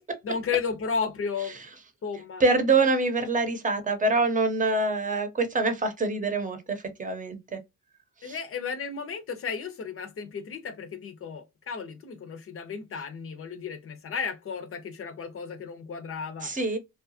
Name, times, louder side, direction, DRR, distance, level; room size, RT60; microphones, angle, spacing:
voice 1, 0.2-1.6 2.0-2.4 8.2-16.5, left 6 dB, 50° left, 0.6 m, -33 dB
voice 2, 2.4-7.6 8.2-8.4 16.4-16.8, right 3 dB, 25° right, 0.8 m, -25 dB
2.7 x 2.3 x 2.7 m
cardioid pair, 90°, 30 cm